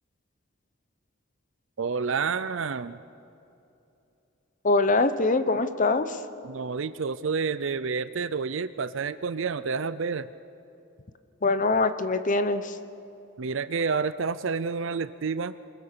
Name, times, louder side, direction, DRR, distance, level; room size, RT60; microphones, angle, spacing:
voice 1, 1.8-3.0 6.4-10.3 13.4-15.5, right 5 dB, 65° right, 14 dB, 0.5 m, -29 dB
voice 2, 4.6-6.2 11.4-12.8, left 3 dB, 40° left, 11 dB, 0.9 m, -23 dB
26.0 x 22.0 x 6.8 m, 2.8 s
head